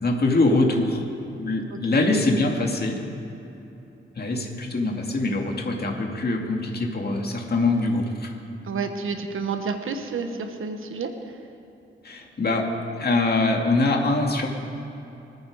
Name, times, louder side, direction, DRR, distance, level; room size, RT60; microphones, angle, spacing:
voice 1, 0.0-1.0 1.3-3.0 4.2-8.3 12.0-12.7 13.0-14.5, left 2 dB, 50° left, 1 dB, 2.4 m, -23 dB
voice 2, 1.7-2.1 8.6-11.1, right 5 dB, 80° right, 6 dB, 1.3 m, -30 dB
25.5 x 9.3 x 4.8 m, 2.9 s
cardioid pair, 70°, 21 cm